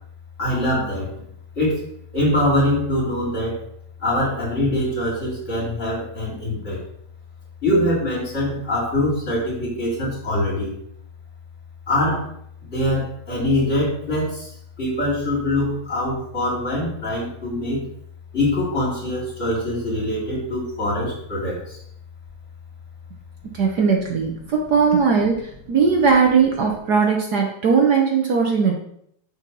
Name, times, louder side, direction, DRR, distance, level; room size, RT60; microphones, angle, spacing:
voice 1, 0.4-1.2 1.6-3.6 4.0-6.8 7.6-10.7 11.9-12.3 12.7-14.5 14.8-17.8 18.3-21.8 25.9-26.0, left 1 dB, 35° left, -5 dB, 3.1 m, -23 dB
voice 2, 23.5-25.3 25.7-28.7, right 5 dB, 60° right, 1 dB, 1.4 m, -18 dB
6.8 x 4.5 x 6.1 m, 0.69 s
omnidirectional pair, 2.2 m